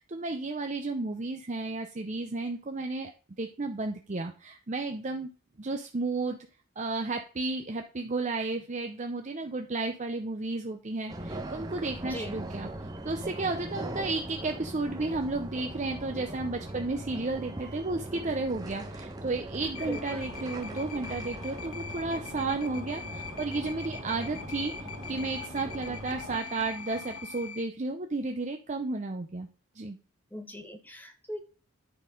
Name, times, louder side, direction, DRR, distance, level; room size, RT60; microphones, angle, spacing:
voice 1, 0.0-3.1 3.4-5.3 5.6-6.4 6.8-12.7 13.0-29.5 29.7-30.0, right 3 dB, 35° right, 5 dB, 0.6 m, -33 dB
sound 1, 11.1-26.4, right 1 dB, 15° right, 1.0 m, -40 dB
voice 2, 12.0-12.4 19.8-20.3 30.3-31.4, equal, 10° left, 6 dB, 1.1 m, -39 dB
sound 2, 19.7-27.6, left 5 dB, 75° left, 1.0 m, -42 dB
9.9 x 4.1 x 5.2 m, 0.36 s
head